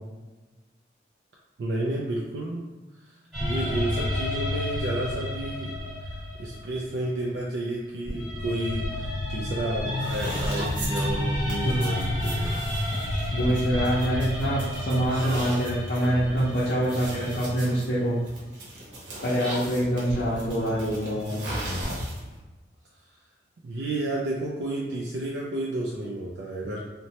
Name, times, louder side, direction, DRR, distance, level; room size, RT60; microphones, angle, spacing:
voice 1, 1.6-2.6 3.0-5.7 6.4-12.6 23.6-26.8, right 1 dB, 65° right, -3 dB, 0.3 m, -31 dB
sound 1, 3.3-7.5 8.1-18.1 20.1-22.0, left 1 dB, 5° right, 0.8 m, -31 dB
sound 2, 10.0-22.4, right 1 dB, 80° right, 0.9 m, -38 dB
voice 2, 13.3-18.2 19.2-21.4, right 1 dB, 55° left, -9 dB, 0.5 m, -25 dB
2.9 x 2.1 x 2.8 m, 1.2 s
head